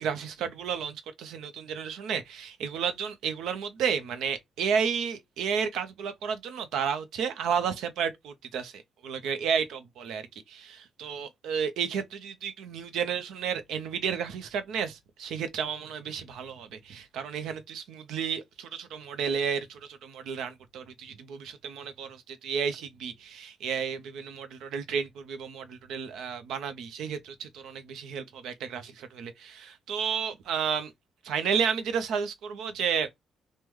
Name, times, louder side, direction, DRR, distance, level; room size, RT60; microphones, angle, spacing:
voice 1, 0.0-10.2 10.5-30.9 31.2-33.1, right 7 dB, 80° right, 0.6 m, -32 dB
3.0 x 2.1 x 3.5 m
cardioid pair, 90°, 0 cm